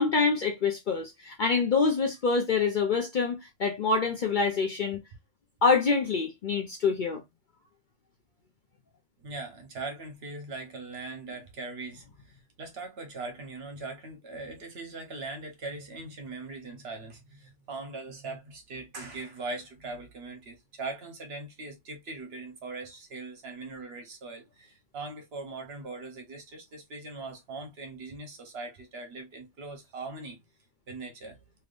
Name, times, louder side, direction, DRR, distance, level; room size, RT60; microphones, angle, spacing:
voice 1, 0.0-5.0 5.6-7.2, left 4 dB, 55° left, 0.6 m, -26 dB
voice 2, 9.2-30.4 30.9-31.4, right 3 dB, 60° right, 1.1 m, -40 dB
3.4 x 2.9 x 2.4 m
omnidirectional pair, 1.2 m